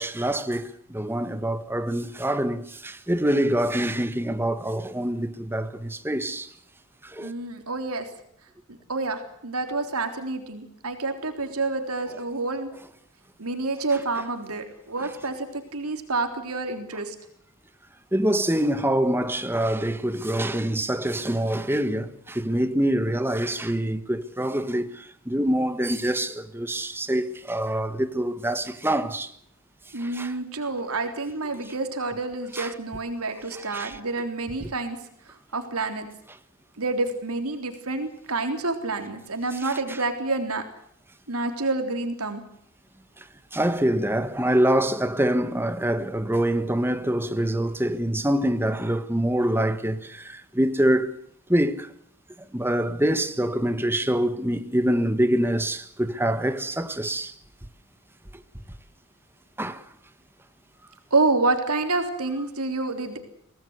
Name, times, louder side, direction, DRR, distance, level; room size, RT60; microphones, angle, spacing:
voice 1, 0.0-6.5 7.0-7.3 18.1-29.3 30.0-30.3 32.5-32.7 33.5-34.0 34.6-34.7 43.5-51.1 51.5-51.9 52.5-57.3 59.6-59.8, right 1 dB, 10° right, 1.4 m, -25 dB
voice 2, 7.2-8.1 8.7-12.7 13.4-17.2 29.9-35.0 35.5-36.1 36.8-40.6 41.3-42.4 61.1-63.2, right 3 dB, 85° right, 3.6 m, -28 dB
24.5 x 18.5 x 8.1 m
head